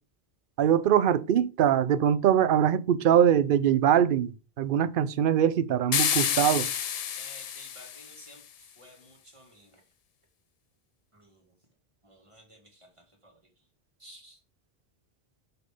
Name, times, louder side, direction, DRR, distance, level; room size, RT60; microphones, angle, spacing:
voice 1, 0.6-4.3 4.6-6.7, right 9 dB, 60° right, 0.7 m, -22 dB
sound 1, 5.9-8.3, left 9 dB, 55° left, 0.4 m, -29 dB
voice 2, 7.2-8.4 8.8-9.8 11.1-11.4 12.0-12.9 13.2-13.4 14.0-14.4, right 1 dB, 30° right, 2.0 m, -53 dB
6.0 x 5.3 x 4.9 m
omnidirectional pair, 1.1 m